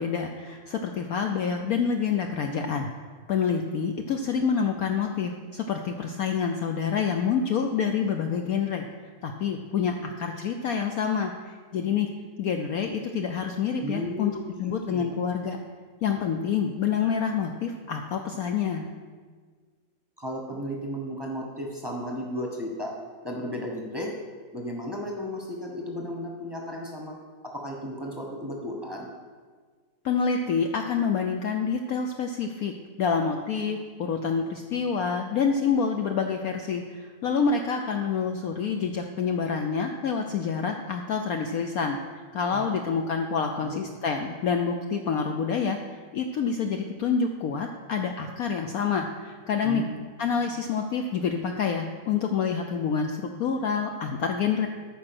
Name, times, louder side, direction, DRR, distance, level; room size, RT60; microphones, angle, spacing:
voice 1, 0.0-2.9 3.3-8.9 9.2-12.1 12.4-14.3 14.6-15.6 16.0-18.9 30.0-32.7 33.0-42.0 42.3-45.8 46.1-49.9 50.2-54.7, left 6 dB, 65° left, 4 dB, 0.9 m, -27 dB
voice 2, 13.8-14.4 14.9-15.1 20.2-22.9 23.2-24.1 24.5-27.2 27.4-29.1 42.5-42.8 43.4-43.8 49.6-50.0, equal, 15° right, -1 dB, 1.1 m, -34 dB
13.5 x 5.4 x 6.0 m, 1.5 s
omnidirectional pair, 2.0 m